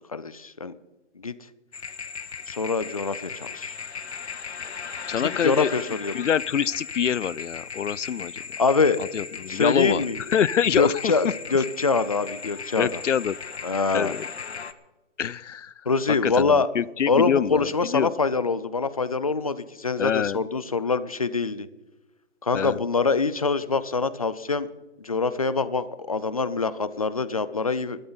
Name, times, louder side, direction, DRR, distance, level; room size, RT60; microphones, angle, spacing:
voice 1, 0.1-0.7 1.2-1.3 2.5-3.7 5.2-6.2 8.6-9.0 9.5-10.2 10.8-13.0 13.6-14.1 15.9-16.7 17.1-21.7 22.4-24.7 25.0-28.0, left 4 dB, 30° left, 15 dB, 0.5 m, -24 dB
sound 1, 1.7-14.7, left 6 dB, 65° left, 1.3 m, -37 dB
voice 2, 5.1-5.7 6.1-8.3 9.1-10.0 10.3-11.1 12.8-13.4 13.9-14.2 15.2-15.7 16.2-18.1 20.0-20.4 22.5-22.8, left 8 dB, 85° left, 23 dB, 0.6 m, -25 dB
20.5 x 13.0 x 4.0 m, 1.1 s
hypercardioid pair, 160°, 36 cm